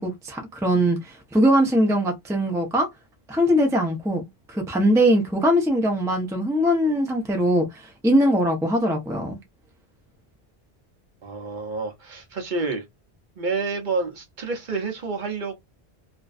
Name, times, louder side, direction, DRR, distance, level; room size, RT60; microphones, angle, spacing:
voice 1, 0.0-2.9 3.3-9.4, equal, 5° right, 0.4 m, -21 dB
voice 2, 11.2-12.8 13.4-15.6, right 4 dB, 55° right, 0.8 m, -29 dB
2.5 x 2.1 x 2.3 m
omnidirectional pair, 1.0 m